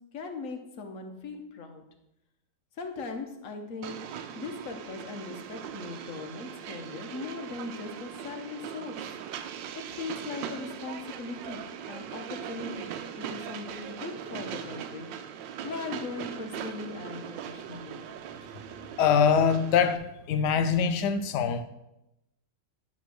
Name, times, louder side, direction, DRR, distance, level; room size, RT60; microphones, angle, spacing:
voice 1, 0.1-1.8 2.8-4.0 4.3-9.1 9.9-12.9 13.2-15.1 15.6-18.1, left 4 dB, 50° left, 1.2 m, -39 dB
Train, 3.8-20.0, right 8 dB, 85° right, 1.3 m, -40 dB
voice 2, 19.0-21.6, left 6 dB, 70° left, 1.2 m, -24 dB
10.5 x 3.6 x 6.2 m
omnidirectional pair, 2.0 m